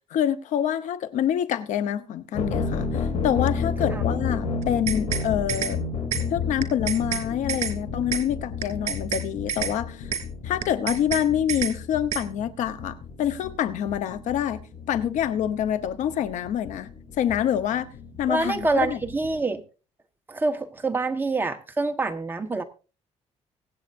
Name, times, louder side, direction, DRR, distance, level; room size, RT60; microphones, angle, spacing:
voice 1, 0.1-5.8 6.3-10.1 10.4-14.6 14.9-16.9 17.2-17.9 18.2-19.0, left 10 dB, 85° left, 1.0 m, -26 dB
sound 1, 2.3-19.4, left 5 dB, 65° left, 3.5 m, -32 dB
sound 2, 4.6-5.2 5.5-5.7 6.1-6.2 6.6-7.2 7.5-7.7 8.1-8.2 8.6-9.2 9.5-9.7 10.1-10.2 10.6-11.2 11.5-11.7 12.1-12.2, right 8 dB, 65° right, 2.9 m, -28 dB
voice 2, 18.3-19.6 20.3-22.6, right 3 dB, 15° right, 1.3 m, -26 dB
24.0 x 8.1 x 2.7 m
cardioid pair, 120°, 12 cm